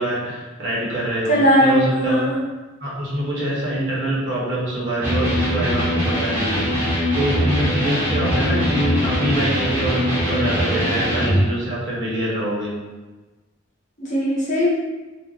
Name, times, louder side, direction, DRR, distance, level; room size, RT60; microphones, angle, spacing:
voice 1, 0.0-1.3 1.6-2.3 2.8-12.8, right 1 dB, 60° right, -6 dB, 1.0 m, -25 dB
voice 2, 1.3-2.4 10.8-10.9 14.0-14.7, equal, 40° left, -6 dB, 0.8 m, -18 dB
Electric guitar, 5.0-11.4, equal, 10° right, 0.8 m, -21 dB
2.5 x 2.0 x 3.8 m, 1.2 s
head